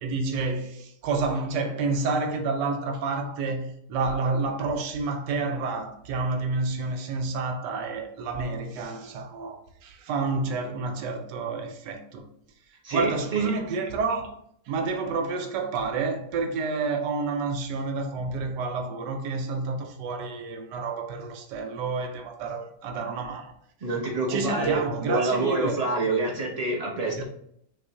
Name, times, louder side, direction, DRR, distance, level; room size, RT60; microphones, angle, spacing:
voice 1, 0.0-12.3 12.9-14.4 14.7-23.5 24.3-25.8 27.2-27.3, right 3 dB, 90° right, 1.3 m, -29 dB
voice 2, 12.8-13.5 23.8-27.2, right 3 dB, 40° right, 0.5 m, -27 dB
5.6 x 3.1 x 2.7 m
omnidirectional pair, 1.8 m